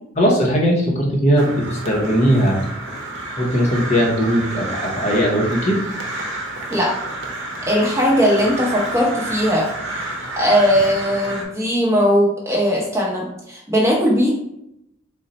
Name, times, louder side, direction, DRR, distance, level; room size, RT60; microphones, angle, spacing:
voice 1, 0.1-2.6 3.4-5.8, equal, 35° left, -2 dB, 0.7 m, -18 dB
Crow, 1.4-11.4, right 2 dB, 65° right, 0.8 m, -30 dB
voice 2, 7.7-9.7 10.4-14.3, equal, 15° right, -4 dB, 0.8 m, -18 dB
3.8 x 2.1 x 4.0 m, 0.80 s
head